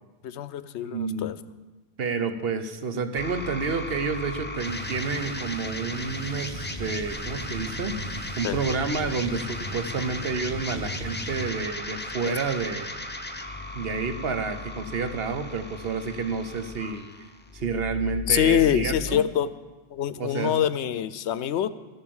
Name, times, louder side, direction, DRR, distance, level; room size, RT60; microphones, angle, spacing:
voice 1, 0.2-1.4 8.4-8.6 12.3-12.4 18.3-19.5 19.9-21.7, left 10 dB, 75° left, 15 dB, 0.9 m, -25 dB
voice 2, 0.8-1.3 2.0-8.0 8.4-12.9 13.7-17.3 17.5-19.2 20.2-20.7, right 4 dB, 60° right, 8 dB, 1.2 m, -29 dB
sound 1, 3.2-19.2, left 2 dB, 10° left, 0.6 m, -36 dB
sound 2, 4.6-11.5, equal, 75° right, 2.4 m, -38 dB
14.0 x 8.1 x 7.1 m, 1.2 s
omnidirectional pair, 1.2 m